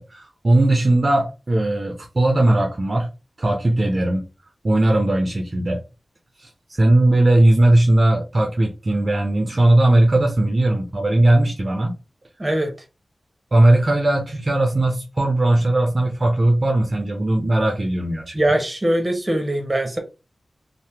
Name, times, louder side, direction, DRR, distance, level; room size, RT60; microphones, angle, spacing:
voice 1, 0.0-3.1 3.4-4.2 4.6-5.8 6.4-11.9 13.5-18.4, right 1 dB, 50° right, 0.7 m, -18 dB
voice 2, 12.4-12.7 18.3-20.0, right 1 dB, 25° right, 1.0 m, -21 dB
2.8 x 2.2 x 3.3 m
cardioid pair, 50°, 0 cm